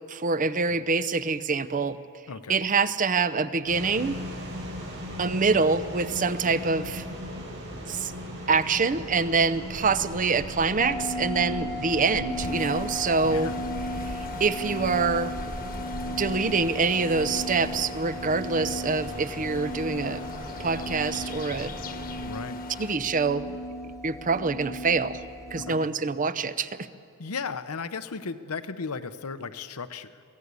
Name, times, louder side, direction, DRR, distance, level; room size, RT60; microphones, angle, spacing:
voice 1, 0.1-2.0 2.5-4.2 5.2-7.0 7.9-8.1 8.5-13.5 14.4-15.3 16.1-20.2 20.6-21.7 22.8-23.5 24.0-25.2 25.5-26.7, right 4 dB, 35° right, 13 dB, 0.7 m, -25 dB
voice 2, 2.3-2.6 13.2-13.6 22.2-22.6 25.6-25.9 27.2-30.2, left 5 dB, 85° left, 12 dB, 0.9 m, -35 dB
sound 1, 3.7-22.2, equal, 55° right, 7.2 m, -39 dB
sound 2, 10.8-25.7, equal, 15° left, 1.1 m, -36 dB
sound 3, 12.3-22.9, left 4 dB, 40° left, 1.2 m, -43 dB
23.5 x 16.5 x 8.3 m, 2.6 s
head